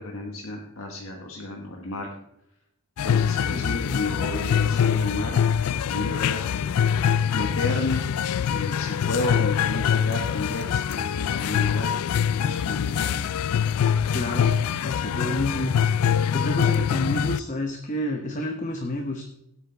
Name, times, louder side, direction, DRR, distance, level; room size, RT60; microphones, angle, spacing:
voice 1, 0.0-2.1 3.0-5.4 5.8-6.6 7.3-8.0 8.5-13.2, left 2 dB, 65° left, 0 dB, 1.4 m, -32 dB
sound 1, 3.0-17.4, left 8 dB, 85° left, 0.4 m, -24 dB
voice 2, 3.5-4.0 14.1-15.8 16.3-19.2, left 1 dB, 35° left, 4 dB, 0.9 m, -29 dB
17.0 x 8.3 x 3.4 m, 0.82 s
head